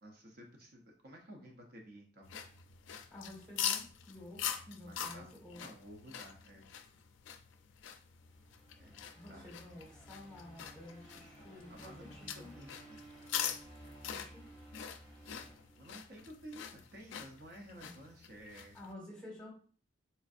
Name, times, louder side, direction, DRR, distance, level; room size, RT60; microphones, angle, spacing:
voice 1, 0.0-2.3 4.8-5.3 5.6-6.7 8.8-9.5 11.7-13.0 15.2-15.5 15.8-18.8, right 1 dB, 55° right, 1 dB, 0.6 m, -53 dB
sound 1, 2.2-18.9, left 9 dB, 90° left, 0.3 m, -44 dB
voice 2, 3.1-5.6 9.1-12.5 14.0-14.5 17.7-17.9 18.7-19.5, left 1 dB, 5° left, -4 dB, 1.3 m, -51 dB
sound 2, 8.1-16.4, right 1 dB, 20° right, 1.1 m, -56 dB
4.3 x 2.5 x 2.4 m, 0.43 s
head